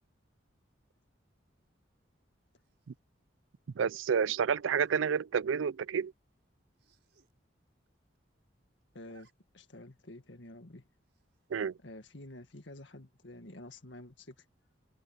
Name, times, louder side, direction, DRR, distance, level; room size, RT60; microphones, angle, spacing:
Zipper (clothing), 2.6-3.0 4.5-4.9 5.5-5.7 6.0-6.1 6.3-6.4 6.7-7.3 7.7-7.8 8.0-8.5 8.8-9.3 9.7-9.8 11.1-11.5, right 3 dB, 60° right, 6.0 m, -66 dB
voice 1, 3.8-6.1 11.5-11.7, right 7 dB, 90° right, 0.4 m, -29 dB
voice 2, 8.9-9.3 9.5-10.9 11.8-14.4, left 1 dB, 70° left, 1.9 m, -49 dB
head